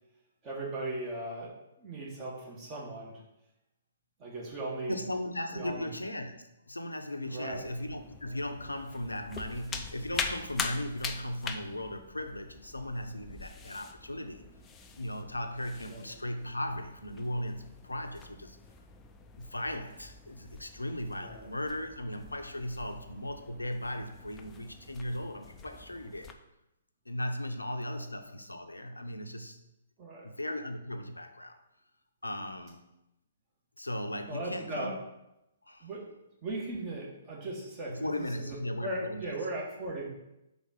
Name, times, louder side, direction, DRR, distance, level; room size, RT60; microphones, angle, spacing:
voice 1, 0.4-1.5 1.8-3.2 4.2-5.0 5.5-5.9 7.3-7.7 15.9-16.0 21.2-21.5 30.0-30.3 34.3-34.9 35.8-36.1 36.4-40.1, right 2 dB, 25° right, -3 dB, 1.7 m, -38 dB
voice 2, 4.9-14.4 15.0-18.6 19.4-26.3 27.1-29.6 30.2-31.6 32.2-32.9 33.8-34.9 35.6-35.9 37.9-39.4, left 1 dB, 85° left, 7 dB, 0.6 m, -37 dB
sound 1, 7.5-26.3, left 5 dB, 15° left, 0.4 m, -44 dB
4.9 x 3.7 x 5.6 m, 0.90 s
figure-of-eight pair, 125°, 0 cm